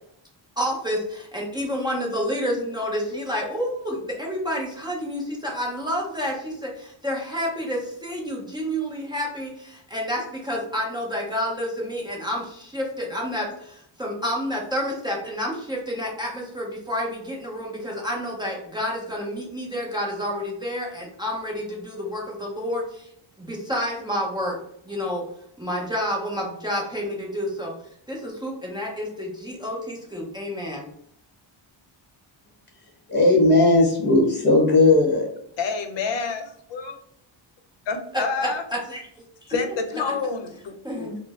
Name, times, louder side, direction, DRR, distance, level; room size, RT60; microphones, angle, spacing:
voice 1, 0.6-23.1 23.4-24.6 24.8-25.2 25.6-27.7 28.1-30.9 38.1-39.1 39.5-39.6 40.8-41.2, equal, 10° right, 0.5 m, -29 dB
voice 2, 33.1-35.3, left 2 dB, 25° left, 0.9 m, -17 dB
voice 3, 35.6-36.4 36.7-36.9 37.9-38.6 39.5-41.1, left 5 dB, 65° left, 0.7 m, -28 dB
4.3 x 2.0 x 2.4 m
wide cardioid pair, 170°, 47 cm